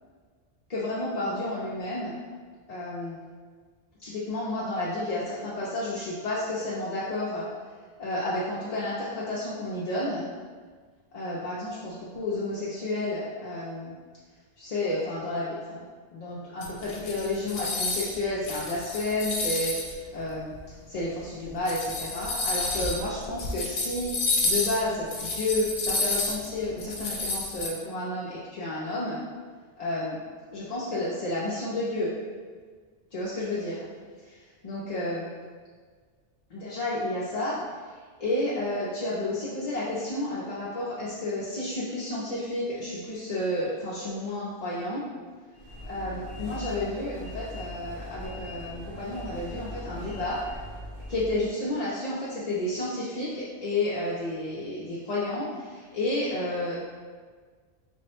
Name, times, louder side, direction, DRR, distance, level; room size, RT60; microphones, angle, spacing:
voice 1, 0.7-2.1 2.7-3.2 4.0-7.4 8.0-10.3 11.1-13.9 14.6-15.8 16.1-19.7 20.1-20.5 20.9-24.1 24.4-29.2 29.8-30.2 30.5-32.1 33.1-33.9 34.6-35.3 36.5-37.6 38.2-45.0 45.9-50.4 51.1-56.8, left 1 dB, 45° left, -8 dB, 0.6 m, -31 dB
sound 1, 16.6-18.2 18.4-19.9 20.6-20.7 21.5-27.7, left 3 dB, 75° left, 0.9 m, -30 dB
sound 2, 45.5-51.5, left 1 dB, 45° right, 1.7 m, -40 dB
3.6 x 2.1 x 4.2 m, 1.5 s
omnidirectional pair, 1.2 m